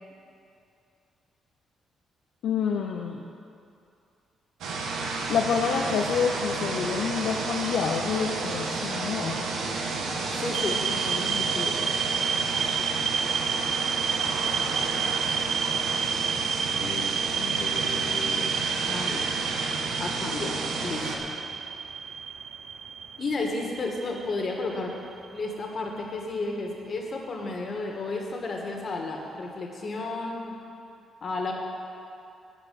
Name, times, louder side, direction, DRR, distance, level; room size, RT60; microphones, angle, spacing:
voice 1, 2.4-3.2 5.3-9.4, left 6 dB, 80° left, 1 dB, 0.7 m, -27 dB
sound 1, 4.6-21.2, right 3 dB, 90° right, 1.4 m, -31 dB
voice 2, 10.3-11.8 16.7-17.0 17.4-19.5 20.0-21.3 23.2-24.9 25.3-30.6 31.2-31.5, left 3 dB, 50° left, 0 dB, 2.0 m, -33 dB
sound 2, 10.5-25.5, right 7 dB, 65° right, 0.5 m, -30 dB
13.5 x 4.8 x 8.7 m, 2.6 s
cardioid pair, 95°, 0 cm